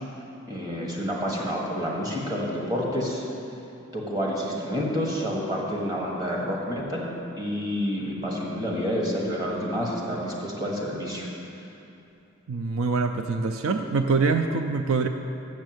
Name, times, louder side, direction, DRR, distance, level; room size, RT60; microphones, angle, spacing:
voice 1, 0.5-3.3 3.9-11.3, equal, 20° right, -3 dB, 1.4 m, -29 dB
voice 2, 12.5-15.1, right 4 dB, 75° right, 6 dB, 0.4 m, -24 dB
7.3 x 6.4 x 7.8 m, 2.7 s
head